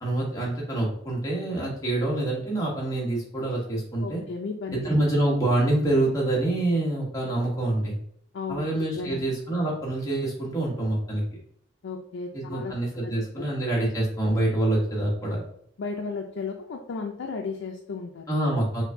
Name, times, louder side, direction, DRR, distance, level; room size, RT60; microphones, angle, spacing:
voice 1, 0.0-4.2 4.7-8.0 8.5-11.2 12.3-15.4 18.3-18.8, right 1 dB, 20° left, -4 dB, 1.1 m, -26 dB
voice 2, 4.0-4.9 8.3-8.7 8.9-9.3 11.8-12.7 13.0-13.1 15.8-18.3, left 4 dB, 85° left, 1 dB, 0.4 m, -34 dB
4.5 x 2.6 x 2.6 m, 0.68 s
head